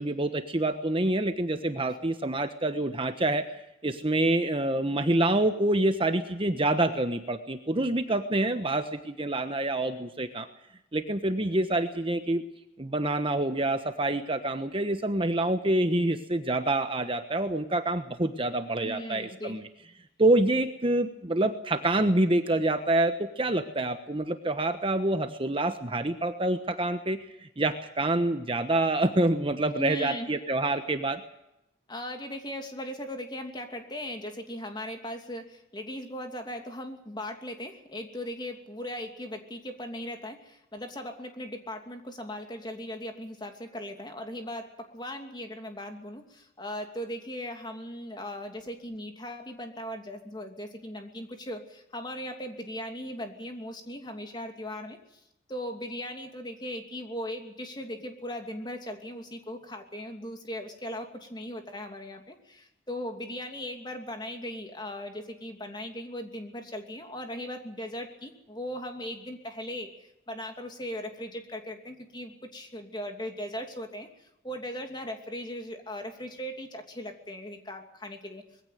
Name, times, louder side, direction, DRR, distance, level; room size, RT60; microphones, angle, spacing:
voice 1, 0.0-3.4 3.8-10.5 10.9-12.4 12.8-19.6 20.2-27.2 27.6-31.2, right 2 dB, 30° right, 8 dB, 1.2 m, -27 dB
voice 2, 18.8-19.6 29.8-30.3 31.9-55.2 55.5-78.4, left 1 dB, 25° left, 5 dB, 2.7 m, -38 dB
21.5 x 16.0 x 9.2 m, 0.83 s
head